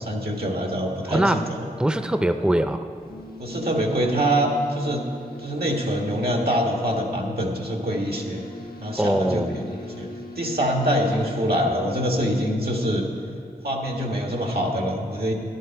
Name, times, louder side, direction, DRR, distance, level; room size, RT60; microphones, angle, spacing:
voice 1, 0.0-1.6 3.4-5.1 5.4-8.4 8.8-10.1 10.3-13.1 13.6-15.3, equal, 85° right, 1 dB, 1.5 m, -25 dB
voice 2, 1.1-1.4 1.8-2.8 9.0-9.6, right 1 dB, 5° right, 8 dB, 0.5 m, -22 dB
sound 1, 2.9-13.3, left 2 dB, 80° left, 1.0 m, -41 dB
11.5 x 11.5 x 4.6 m, 2.3 s
wide cardioid pair, 40°, 15 cm